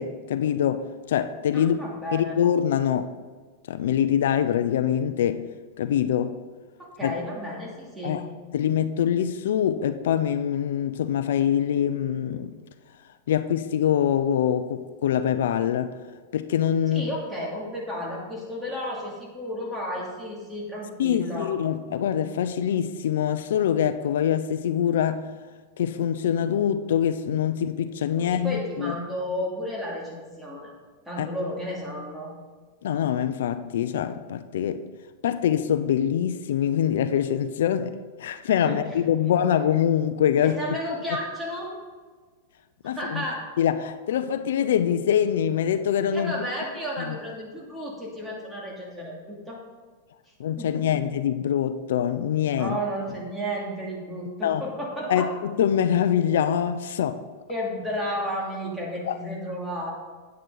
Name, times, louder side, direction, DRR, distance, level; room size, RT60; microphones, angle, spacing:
voice 1, 0.0-1.8 2.1-3.1 3.7-5.5 5.8-6.4 7.0-7.1 8.0-8.2 8.5-12.5 13.3-15.9 16.3-17.1 21.0-25.3 25.8-29.0 31.2-31.3 32.8-34.8 35.2-40.6 42.8-43.2 43.6-46.3 47.1-47.2 50.4-52.8 54.4-54.6 55.1-57.2 59.1-59.2, left 9 dB, 80° left, 0.5 m, -24 dB
voice 2, 1.5-2.4 6.8-8.2 16.9-21.5 28.2-30.7 31.1-32.3 38.6-39.0 40.4-41.7 42.8-43.4 46.1-49.6 50.3-51.0 52.6-55.3 57.5-59.9, equal, 5° right, 2.7 m, -33 dB
9.3 x 9.2 x 4.0 m
supercardioid pair, 140°, 0 cm